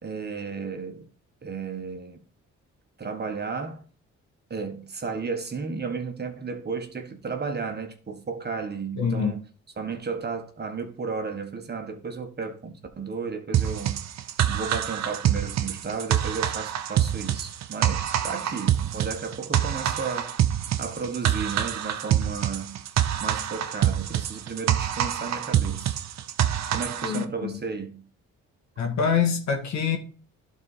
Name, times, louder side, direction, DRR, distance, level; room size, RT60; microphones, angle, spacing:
voice 1, 0.0-1.1 1.4-2.2 3.0-3.9 4.5-9.4 9.8-14.0 14.5-20.3 20.8-22.8 23.2-26.0 26.7-28.0, right 5 dB, 35° right, 1.4 m, -33 dB
voice 2, 9.0-9.3 27.0-27.6 28.8-30.0, left 6 dB, 70° left, 1.8 m, -25 dB
sound 1, 13.5-27.2, right 10 dB, 60° right, 0.8 m, -26 dB
12.0 x 4.2 x 4.2 m
cardioid pair, 80°, 30 cm